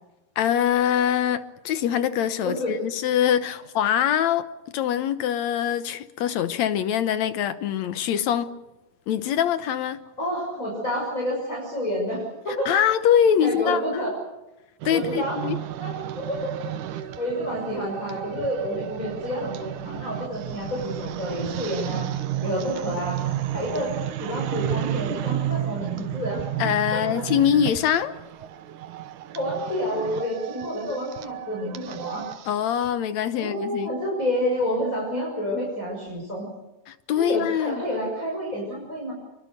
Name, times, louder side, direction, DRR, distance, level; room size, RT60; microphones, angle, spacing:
voice 1, 0.4-4.5 4.7-8.5 9.1-10.0 12.7-13.8 14.9-15.6 26.6-28.1 32.5-33.9 36.9-37.8, left 9 dB, 65° left, 2.0 m, -23 dB
voice 2, 2.4-2.8 10.2-12.7 13.4-14.1 14.9-15.4 15.8-16.5 16.9-22.1 22.4-23.2 23.5-23.9 24.2-26.4 26.9-27.2 29.3-32.3 33.4-36.5 37.2-39.1, equal, 20° left, 6.5 m, -29 dB
sound 1, 14.8-32.9, right 12 dB, 70° right, 2.5 m, -32 dB
26.0 x 24.0 x 6.7 m
omnidirectional pair, 3.8 m